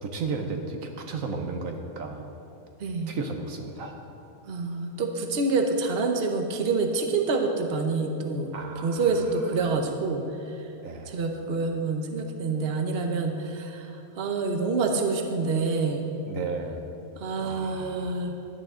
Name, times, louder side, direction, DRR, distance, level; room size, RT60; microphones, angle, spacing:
voice 1, 0.0-2.3 3.1-4.0 8.5-9.0 10.8-11.1 16.3-16.8 17.4-18.4, right 4 dB, 70° right, 4 dB, 1.2 m, -34 dB
voice 2, 2.8-3.1 4.5-10.2 11.1-16.1 17.2-18.3, right 3 dB, 50° right, 4 dB, 1.1 m, -27 dB
16.0 x 11.0 x 3.8 m, 2.9 s
omnidirectional pair, 1.5 m